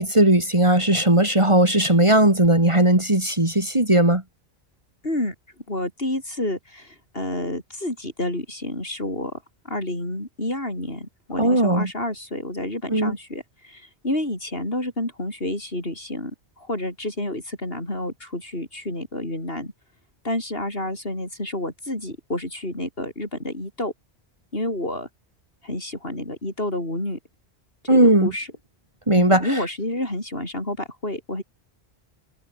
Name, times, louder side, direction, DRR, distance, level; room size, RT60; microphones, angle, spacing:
voice 1, 0.0-4.2 11.4-11.9 12.9-13.1 27.9-28.3 29.1-29.5, right 1 dB, 30° right, 2.7 m, -17 dB
voice 2, 5.0-5.3 5.7-9.3 9.6-19.7 20.2-23.9 24.5-25.1 25.6-27.2 27.8-28.5 29.2-31.4, left 1 dB, 60° left, 7.4 m, -29 dB
omnidirectional pair, 1.1 m